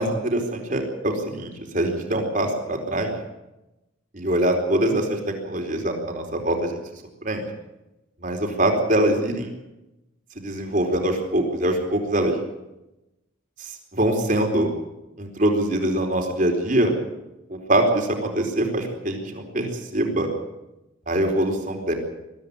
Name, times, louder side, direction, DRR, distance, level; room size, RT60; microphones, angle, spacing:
voice 1, 0.0-3.1 4.1-6.8 7.2-7.5 8.2-9.5 10.4-12.3 13.6-14.7 15.2-16.9 17.5-18.1 18.3-19.7 19.9-20.3 21.1-21.9, right 1 dB, 40° right, 3 dB, 4.3 m, -23 dB
22.5 x 14.5 x 8.5 m, 0.94 s
head